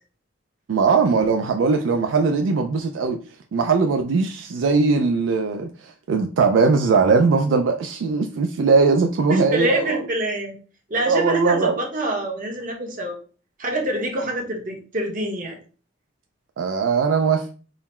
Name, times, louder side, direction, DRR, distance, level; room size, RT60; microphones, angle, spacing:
voice 1, 0.7-3.2 3.5-10.0 11.0-11.8 16.6-17.4, right 4 dB, 75° right, 5 dB, 0.4 m, -20 dB
voice 2, 9.3-10.6 10.9-13.2 13.6-15.6, right 1 dB, 45° right, 1 dB, 1.0 m, -26 dB
3.8 x 2.0 x 4.2 m, 0.38 s
head